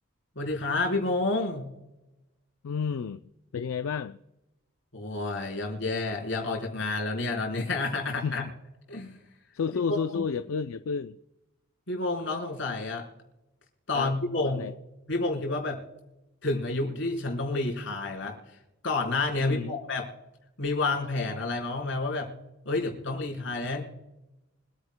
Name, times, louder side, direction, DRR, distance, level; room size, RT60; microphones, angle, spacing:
voice 1, 0.4-1.7 4.9-8.4 8.9-9.2 9.9-10.2 11.9-13.0 13.9-14.7 15.1-15.8 16.4-18.3 18.8-20.1 20.6-22.3 22.7-23.8, left 3 dB, 65° left, 3.8 m, -29 dB
voice 2, 2.6-3.2 3.5-4.2 8.2-8.5 9.5-11.2 13.9-14.1 14.4-14.7 19.4-19.8, left 6 dB, 90° left, 0.4 m, -31 dB
25.0 x 9.6 x 2.2 m
head